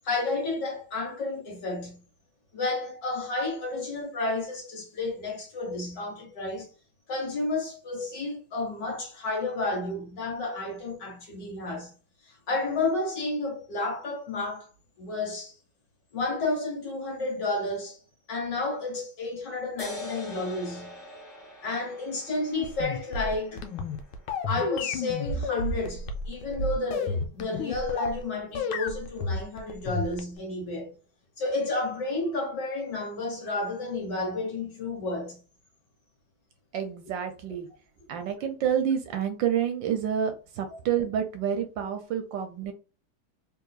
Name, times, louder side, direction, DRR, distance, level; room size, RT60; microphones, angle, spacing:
voice 1, 0.0-2.0 2.5-6.7 7.1-11.9 12.3-14.7 15.0-15.5 16.1-18.0 18.3-20.9 21.6-23.6 24.5-30.9 31.4-35.4 40.7-40.8, left 2 dB, 60° left, 2.1 m, -31 dB
sound 1, 19.8-26.8, left 1 dB, 25° left, 1.8 m, -45 dB
sound 2, 22.5-28.2 28.5-30.4, left 3 dB, 90° left, 1.5 m, -31 dB
voice 2, 36.7-37.7 38.1-42.7, right 8 dB, 75° right, 1.2 m, -28 dB
3.6 x 3.2 x 2.3 m
omnidirectional pair, 2.3 m